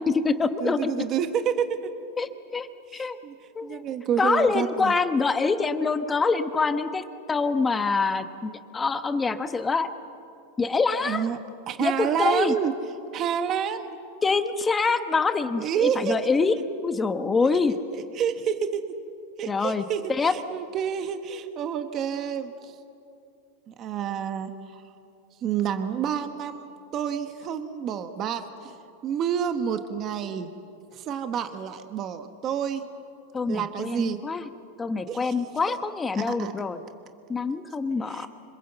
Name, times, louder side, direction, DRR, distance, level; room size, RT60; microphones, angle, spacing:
voice 1, 0.0-0.9 2.2-2.7 2.9-3.2 3.5-3.8 4.2-9.9 10.6-11.3 11.8-12.5 14.2-16.6 16.8-17.7 19.5-20.3 33.3-34.5 34.8-36.8 37.3-38.3, left 4 dB, 10° left, 9 dB, 1.0 m, -25 dB
voice 2, 0.6-1.9 2.9-3.3 3.6-4.9 11.0-11.4 11.7-12.7 13.1-14.0 15.6-16.2 17.9-18.8 19.4-22.7 23.7-24.5 25.4-28.8 29.0-30.5 30.9-32.9 33.5-34.2 35.1-35.3 35.7-35.8 36.1-36.5 38.1-38.3, right 8 dB, 30° right, 8 dB, 1.2 m, -29 dB
26.5 x 26.0 x 8.0 m, 2.5 s
supercardioid pair, 160°, 0 cm